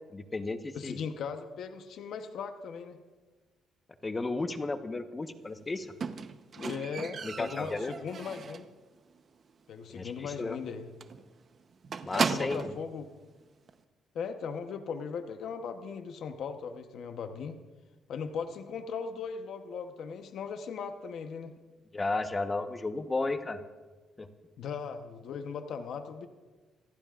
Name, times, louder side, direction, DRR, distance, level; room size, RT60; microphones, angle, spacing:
voice 1, 0.1-1.0 4.0-5.9 6.6-6.7 7.2-7.9 9.9-10.6 12.0-12.7 21.9-23.6 24.2-24.3, left 3 dB, 25° left, 8 dB, 1.2 m, -33 dB
voice 2, 0.7-3.0 6.6-8.7 9.7-10.9 12.1-13.1 14.1-17.6 18.1-21.5 24.6-26.3, left 6 dB, 70° left, 7 dB, 1.0 m, -38 dB
Squeak, 6.0-8.8 9.1-9.5 9.8-9.9 10.3-10.4 10.6-10.8 11.0-12.8 13.7-13.8, right 5 dB, 50° right, 0.9 m, -36 dB
27.0 x 15.0 x 2.5 m, 1.3 s
cardioid pair, 90°, 0 cm